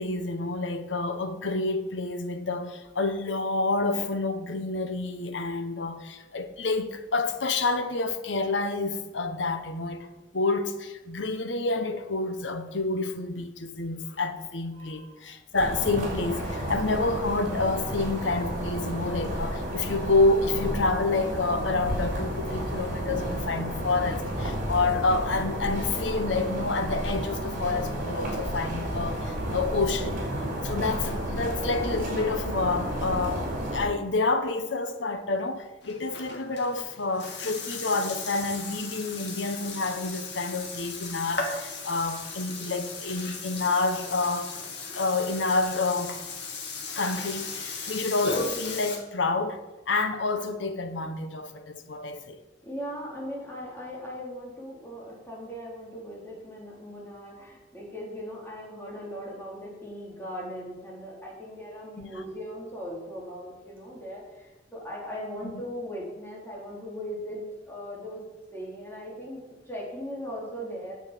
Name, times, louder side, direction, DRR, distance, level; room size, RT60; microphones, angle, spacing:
voice 1, 0.0-10.1 10.3-30.2 30.6-33.5 33.7-44.5 44.9-46.2 47.0-49.6 49.9-52.4 62.0-62.2 65.4-65.5, left 3 dB, 80° left, 1.1 m, -28 dB
voice 2, 14.7-15.1 52.6-64.2 64.7-68.2 68.5-71.0, equal, 15° left, 3.9 m, -38 dB
sound 1, 15.5-33.8, equal, 45° right, 4.7 m, -32 dB
Burping eructation, 35.8-49.0, left 4 dB, 65° left, 2.4 m, -36 dB
10.5 x 7.3 x 7.5 m
head